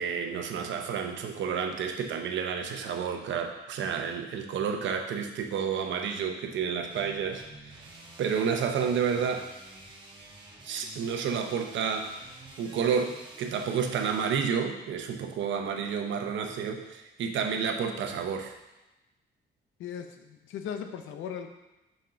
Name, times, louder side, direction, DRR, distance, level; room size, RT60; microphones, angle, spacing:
voice 1, 0.0-9.5 10.6-12.1 12.6-18.5, right 6 dB, 70° right, 5 dB, 0.8 m, -30 dB
sound 1, 6.9-14.4, right 1 dB, 25° right, 1.4 m, -49 dB
voice 2, 19.8-21.5, left 8 dB, 80° left, 6 dB, 0.7 m, -38 dB
5.4 x 3.8 x 5.7 m, 1.0 s
cardioid pair, 90°, 20 cm